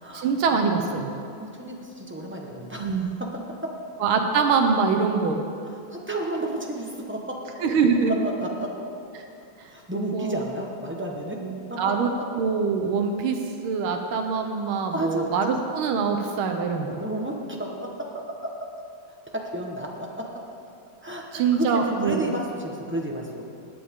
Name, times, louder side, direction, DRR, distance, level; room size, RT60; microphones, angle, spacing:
voice 1, 0.1-1.1 2.8-3.1 4.0-5.4 7.6-8.2 9.6-9.7 10.1-10.4 11.8-12.1 12.4-17.0 21.3-22.3, right 5 dB, 80° right, 4 dB, 1.7 m, -24 dB
voice 2, 1.4-3.7 5.6-7.4 8.2-8.7 9.7-11.4 11.7-11.9 14.7-15.4 16.9-18.7 19.1-20.3 21.0-23.4, right 1 dB, 10° right, -1 dB, 0.6 m, -32 dB
19.0 x 8.6 x 3.7 m, 2.5 s
omnidirectional pair, 2.3 m